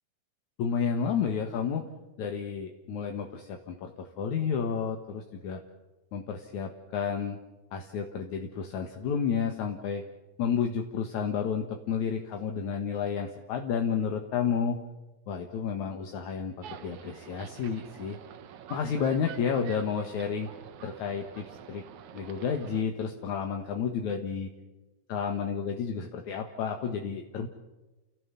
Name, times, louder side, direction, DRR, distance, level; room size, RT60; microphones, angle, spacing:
voice 1, 0.6-1.8 2.2-5.6 6.1-7.4 7.7-10.0 10.4-14.8 15.3-18.2 18.7-20.5 20.8-21.8 22.1-24.5 25.1-27.5, left 6 dB, 70° left, 4 dB, 2.9 m, -31 dB
sound 1, 16.6-22.8, right 9 dB, 75° right, 2.5 m, -46 dB
30.0 x 17.5 x 7.1 m, 1.1 s
omnidirectional pair, 3.6 m